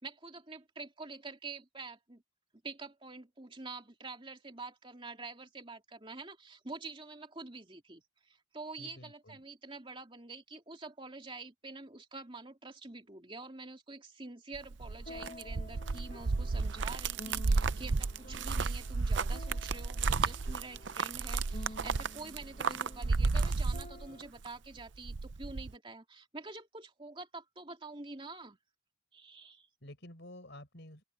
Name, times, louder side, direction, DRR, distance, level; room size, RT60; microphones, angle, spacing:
voice 1, 0.0-2.2 2.6-28.6 29.1-29.7, right 3 dB, 25° right, 2.7 m, -47 dB
voice 2, 8.8-9.4 29.8-31.0, left 1 dB, 60° left, 5.7 m, -50 dB
sound 1, 14.5-24.5 24.8-25.7, right 4 dB, 60° right, 0.6 m, -33 dB
sound 2, 14.8-24.3, left 1 dB, 35° left, 1.7 m, -52 dB
open air
head